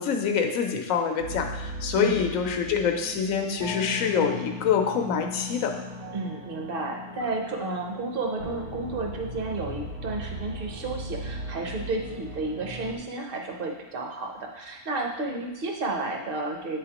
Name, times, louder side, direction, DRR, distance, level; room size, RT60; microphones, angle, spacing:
voice 1, 0.0-5.7, left 6 dB, 70° left, 4 dB, 1.1 m, -26 dB
sound 1, 1.2-13.0, equal, 70° right, 1.7 m, -38 dB
voice 2, 2.0-2.3 6.1-16.8, right 2 dB, 45° right, 2 dB, 0.9 m, -32 dB
8.9 x 4.1 x 2.9 m, 1.1 s
omnidirectional pair, 1.5 m